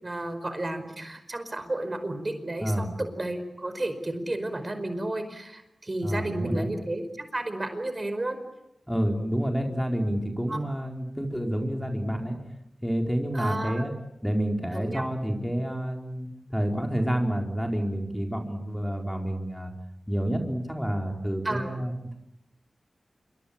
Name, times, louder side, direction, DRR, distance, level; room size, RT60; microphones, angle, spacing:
voice 1, 0.0-8.4 10.5-10.6 13.3-13.8 14.7-15.0 21.4-21.7, right 1 dB, 35° right, 9 dB, 5.1 m, -32 dB
voice 2, 6.0-6.7 8.9-12.4 12.8-13.9 14.2-19.7 20.1-22.2, equal, ahead, 3 dB, 4.3 m, -29 dB
27.5 x 24.0 x 8.8 m, 0.84 s
cardioid pair, 55°, 0 cm